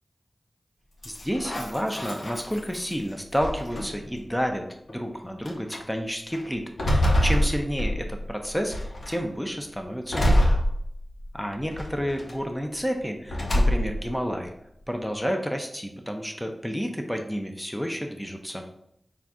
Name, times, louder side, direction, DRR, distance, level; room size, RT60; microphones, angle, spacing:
sound 1, 1.0-2.9 3.4-4.1 4.9-5.0 5.4-5.8 6.3-8.3 8.7-9.2 10.1-11.3 11.7-12.3 13.3-14.1, equal, 70° left, 0.9 m, -25 dB
voice 1, 1.0-10.5 11.3-14.5 14.9-18.6, equal, 5° left, 4 dB, 0.7 m, -30 dB
5.7 x 2.5 x 3.6 m, 0.74 s
cardioid pair, 40°, 0 cm